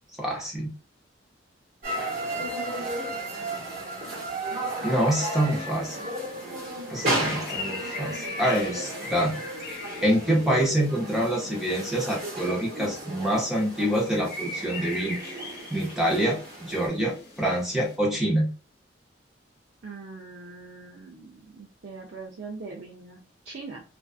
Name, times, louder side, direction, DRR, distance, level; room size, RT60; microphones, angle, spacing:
voice 1, 0.2-0.7 4.8-6.0 6.9-9.4 9.7-15.2 15.7-18.5, right 1 dB, ahead, -3 dB, 0.7 m, -26 dB
sound 1, 1.8-16.9, right 1 dB, 50° right, 1.1 m, -34 dB
sound 2, 5.5-18.0, left 2 dB, 55° left, 0.9 m, -42 dB
voice 2, 19.8-23.8, right 4 dB, 65° right, -1 dB, 0.5 m, -42 dB
2.4 x 2.4 x 2.3 m, 0.34 s
head